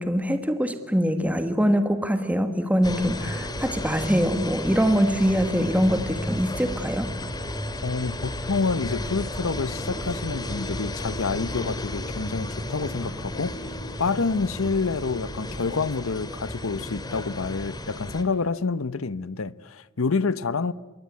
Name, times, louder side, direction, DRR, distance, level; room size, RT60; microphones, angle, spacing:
voice 1, 0.0-7.2, equal, 5° right, 1.4 m, -23 dB
sound 1, 2.8-18.2, left 1 dB, 20° left, 2.4 m, -33 dB
voice 2, 7.8-13.5 14.0-20.7, left 4 dB, 80° left, 0.8 m, -28 dB
26.5 x 23.0 x 8.5 m
head